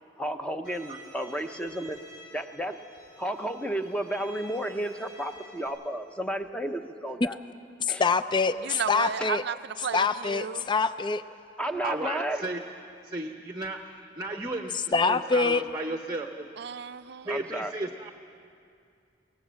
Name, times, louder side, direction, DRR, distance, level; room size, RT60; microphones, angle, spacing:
voice 1, 0.2-2.0 2.3-2.8 3.2-7.4 7.9-8.0 11.6-12.5 17.3-17.7, right 1 dB, 5° left, 7 dB, 0.8 m, -32 dB
Bowed string instrument, 0.6-5.7, left 1 dB, 60° left, 5.4 m, -50 dB
voice 2, 7.8-9.4 9.9-11.2 14.9-15.6, left 4 dB, 25° left, 13 dB, 0.4 m, -25 dB
voice 3, 8.6-10.7 16.6-17.3, right 6 dB, 60° right, 13 dB, 0.5 m, -34 dB
voice 4, 11.8-12.6 13.0-16.5 17.2-18.1, right 2 dB, 20° right, 4 dB, 0.8 m, -34 dB
22.0 x 18.5 x 7.6 m, 2.4 s
head